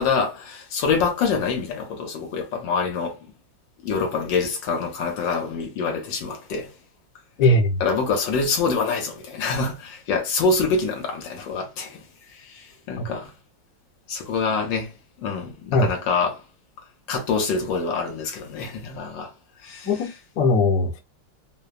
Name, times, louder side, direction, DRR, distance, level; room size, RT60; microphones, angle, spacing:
voice 1, 0.0-3.2 3.8-6.7 7.8-12.0 12.3-13.3 14.1-14.9 15.2-16.4 17.1-19.3 19.6-19.9, left 4 dB, 75° left, 1.3 m, -25 dB
voice 2, 7.4-7.7 13.0-13.1 15.7-15.9 19.8-21.0, left 2 dB, 60° left, 1.1 m, -20 dB
3.1 x 2.1 x 2.3 m
omnidirectional pair, 2.1 m